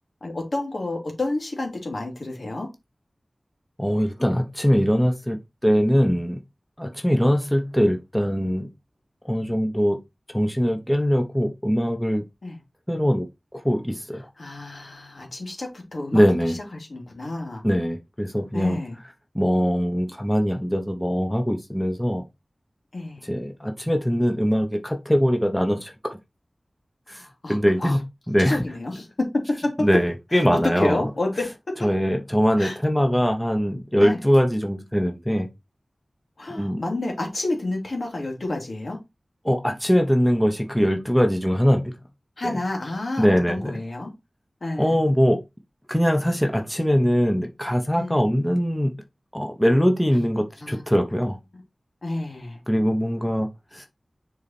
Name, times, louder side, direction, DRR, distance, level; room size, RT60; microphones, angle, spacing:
voice 1, 0.2-2.7 12.4-12.6 14.4-17.6 18.5-19.0 22.9-23.3 27.1-28.0 28.4-29.1 29.6-29.9 30.5-31.5 32.6-32.8 34.0-34.2 36.4-39.0 42.4-44.1 44.6-45.0 47.9-48.2 50.6-50.8 52.0-52.6, left 2 dB, 70° left, 2.7 m, -30 dB
voice 2, 3.8-5.4 5.6-6.4 6.8-8.7 9.2-10.0 10.3-12.2 12.9-13.3 13.5-14.3 16.1-16.6 17.6-18.8 19.3-22.2 23.2-25.9 27.1-28.0 28.3-28.6 29.8-31.0 31.8-35.5 36.5-36.8 39.4-41.9 42.4-42.6 43.2-43.7 44.8-45.4 45.9-48.9 49.3-51.4 52.7-53.9, equal, 5° left, 1.0 m, -22 dB
6.6 x 4.0 x 4.3 m
wide cardioid pair, 50°, 0 cm